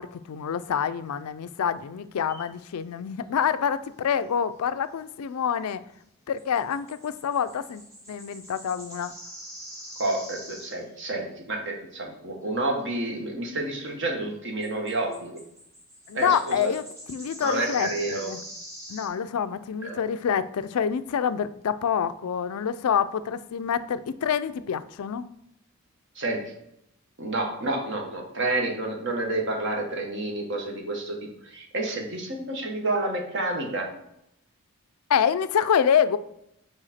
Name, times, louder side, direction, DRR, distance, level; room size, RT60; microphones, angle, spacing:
voice 1, 0.0-5.8 6.3-7.8 8.1-9.1 16.1-18.4 18.9-25.3 35.1-36.2, left 7 dB, 85° left, 14 dB, 0.4 m, -27 dB
sound 1, 2.3-2.5 6.4-11.0 11.4-11.5 12.5-12.6 14.0-14.1 14.6-19.1, equal, 15° right, 2.1 m, -43 dB
voice 2, 10.0-15.4 16.1-16.8 17.4-18.3 19.8-20.0 26.1-26.5 27.2-33.9, right 2 dB, 55° right, 2 dB, 1.2 m, -29 dB
4.9 x 4.7 x 4.2 m, 0.77 s
head